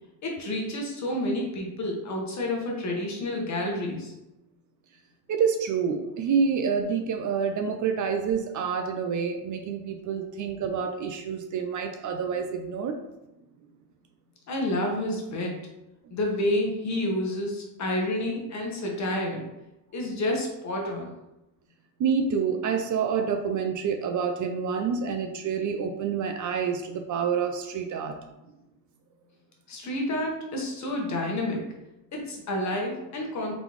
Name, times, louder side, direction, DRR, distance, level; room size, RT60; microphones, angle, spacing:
voice 1, 0.2-4.1 14.5-15.6 16.1-19.5 19.9-21.1 29.7-31.7 32.1-33.5, left 1 dB, 40° left, 0 dB, 1.2 m, -29 dB
voice 2, 5.3-13.0 16.0-16.1 22.0-28.2, right 6 dB, 45° right, 5 dB, 0.5 m, -28 dB
4.0 x 3.5 x 3.1 m, 0.94 s
cardioid pair, 115°, 42 cm